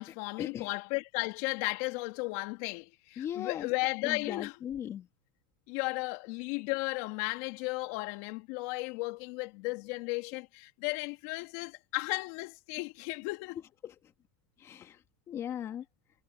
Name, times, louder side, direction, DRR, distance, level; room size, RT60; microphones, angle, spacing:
voice 1, 0.0-4.6 5.7-13.6, left 26 dB, 60° left, 2.7 m, -35 dB
voice 2, 3.2-3.7 4.0-5.0 13.8-13.9 14.6-15.0 15.3-15.8, left 10 dB, 35° left, 1.7 m, -38 dB
supercardioid pair, 125°, 9 cm